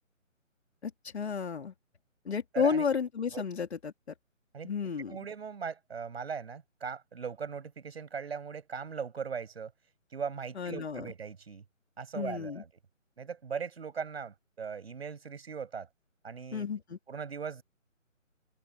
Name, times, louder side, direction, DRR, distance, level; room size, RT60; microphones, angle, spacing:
voice 1, 0.8-1.7 2.2-3.9 4.6-5.2 10.5-11.1 12.1-12.6 16.5-17.0, left 6 dB, 55° left, 3.3 m, -32 dB
voice 2, 2.5-2.9 3.3-3.4 4.5-9.7 10.1-11.6 12.0-12.7 13.2-15.9 16.2-16.7 17.1-17.6, right 6 dB, 50° right, 7.8 m, -39 dB
open air
figure-of-eight pair, 150°, 39 cm